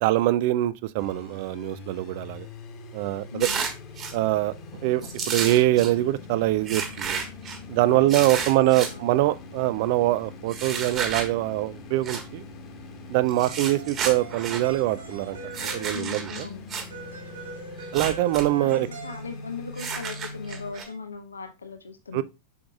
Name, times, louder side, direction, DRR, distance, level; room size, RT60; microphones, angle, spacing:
voice 1, 0.0-2.5 2.9-3.5 4.1-4.5 4.8-7.2 7.7-12.4 13.1-16.4 17.9-18.9 22.1-22.2, right 16 dB, 50° right, 0.4 m, -24 dB
sound 1, 1.0-20.7, left 3 dB, 35° left, 1.5 m, -43 dB
voice 2, 3.3-3.6 7.8-9.2 15.9-16.6 18.5-22.2, left 5 dB, 75° left, 0.7 m, -39 dB
sound 2, 3.4-4.1 5.0-5.9 6.7-7.6 8.1-8.9 10.5-11.3 12.0-12.2 13.3-14.6 15.5-16.9 17.8-18.5 18.7-18.8 19.8-20.8, right 6 dB, 30° right, 1.4 m, -31 dB
sound 3, 13.5-16.3 16.9-19.4 20.5-20.9, right 3 dB, 75° right, 2.4 m, -43 dB
7.1 x 6.0 x 2.4 m
figure-of-eight pair, 90°, 0 cm